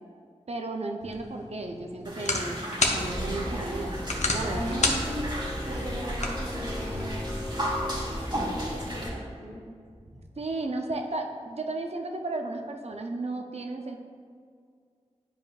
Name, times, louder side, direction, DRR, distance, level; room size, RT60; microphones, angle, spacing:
voice 1, 0.5-4.8 10.4-14.0, right 2 dB, 60° right, 3 dB, 0.6 m, -34 dB
sound 1, 1.0-7.1, left 2 dB, 70° left, 0.8 m, -32 dB
sound 2, 2.0-9.1, equal, 40° right, 1.7 m, -35 dB
sound 3, 3.0-9.1, equal, 10° left, 0.5 m, -35 dB
voice 2, 4.4-5.3 5.7-7.2 8.7-9.6 10.1-10.2, equal, 75° right, -4 dB, 1.3 m, -37 dB
10.0 x 5.1 x 2.4 m, 2.2 s
wide cardioid pair, 65°, 12 cm